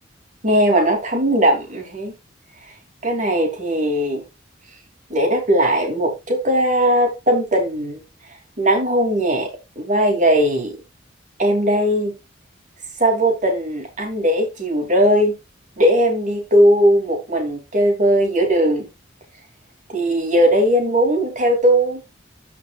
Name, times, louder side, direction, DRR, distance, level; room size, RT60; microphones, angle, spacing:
voice 1, 0.4-2.1 3.0-4.2 5.1-8.0 8.6-9.5 9.8-10.8 11.4-12.1 13.0-15.3 15.8-18.8 19.9-22.0, equal, 40° right, 3.0 m, -18 dB
12.5 x 6.0 x 2.4 m
head